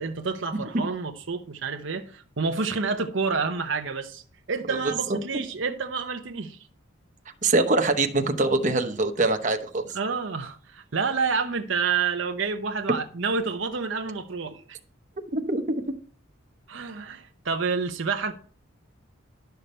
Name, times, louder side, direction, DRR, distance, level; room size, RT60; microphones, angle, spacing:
voice 1, 0.0-4.2 4.5-6.6 9.9-14.8 16.7-18.3, right 5 dB, 65° right, 0.8 m, -29 dB
voice 2, 7.4-9.8 15.3-15.8, right 2 dB, 35° right, 1.0 m, -23 dB
11.5 x 6.8 x 4.3 m
head